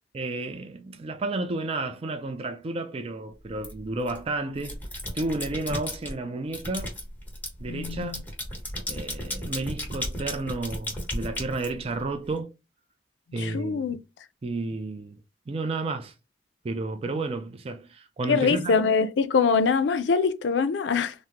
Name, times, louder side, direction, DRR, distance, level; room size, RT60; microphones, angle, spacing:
voice 1, 0.1-4.8 5.1-6.9 7.6-8.2 8.9-12.5 13.3-13.9 14.4-15.2 15.5-16.1 16.6-18.8, right 3 dB, 35° right, 0.4 m, -32 dB
sound 1, 3.6-4.2 4.6-6.1 6.5-12.3, left 1 dB, 10° left, 1.1 m, -34 dB
voice 2, 7.7-8.2 13.4-14.0 18.3-21.3, left 5 dB, 85° left, 0.4 m, -24 dB
3.5 x 2.0 x 2.9 m
head